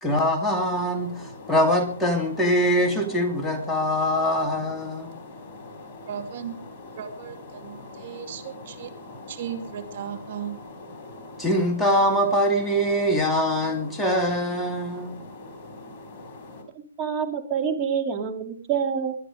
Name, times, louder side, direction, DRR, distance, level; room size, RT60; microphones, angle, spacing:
voice 1, 0.0-5.2 11.4-15.2, equal, 5° left, 1 dB, 2.6 m, -23 dB
sound 1, 0.6-16.6, left 2 dB, 30° left, 4.1 m, -43 dB
voice 2, 6.1-6.6 7.0-8.9 9.3-10.6, right 8 dB, 50° right, 7 dB, 2.5 m, -36 dB
voice 3, 17.0-19.2, right 7 dB, 25° right, 5 dB, 2.6 m, -26 dB
22.0 x 9.9 x 5.1 m, 0.42 s
hypercardioid pair, 145°, 0 cm